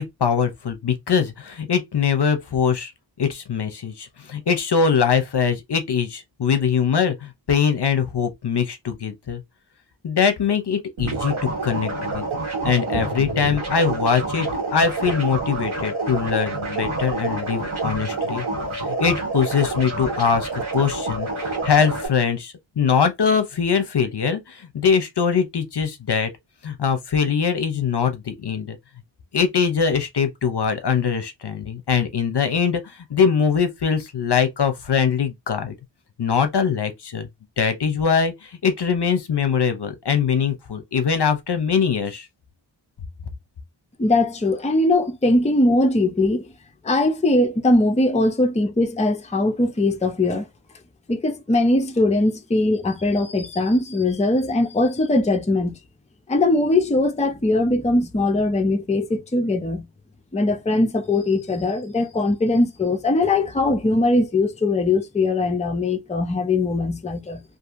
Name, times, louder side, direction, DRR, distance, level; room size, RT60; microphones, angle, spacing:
voice 1, 0.0-2.9 3.2-9.4 10.0-12.3 12.6-18.4 19.0-26.3 26.6-28.8 29.3-35.7 36.2-37.3 37.6-42.3, left 6 dB, 55° left, 0.7 m, -22 dB
sound 1, 11.0-22.1, right 2 dB, 80° right, 1.4 m, -27 dB
voice 2, 44.0-46.5 46.8-50.5 51.1-55.7 56.3-59.9 60.3-67.4, left 2 dB, 15° left, 0.5 m, -20 dB
2.7 x 2.6 x 2.4 m
wide cardioid pair, 50°, 48 cm